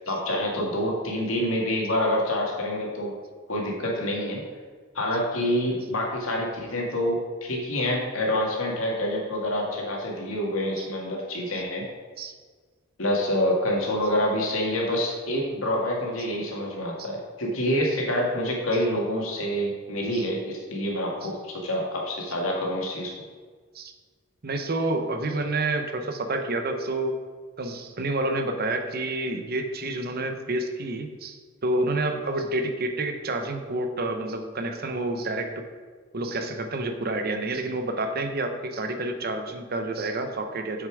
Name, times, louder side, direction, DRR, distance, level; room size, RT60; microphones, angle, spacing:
voice 1, 0.1-3.1 3.5-4.4 4.9-11.8 13.0-23.1, left 1 dB, 85° left, -2 dB, 2.1 m, -27 dB
voice 2, 24.4-27.2 27.6-31.4 31.6-35.6 36.1-40.9, right 2 dB, 50° right, 6 dB, 0.8 m, -29 dB
7.3 x 6.8 x 4.9 m, 1.5 s
head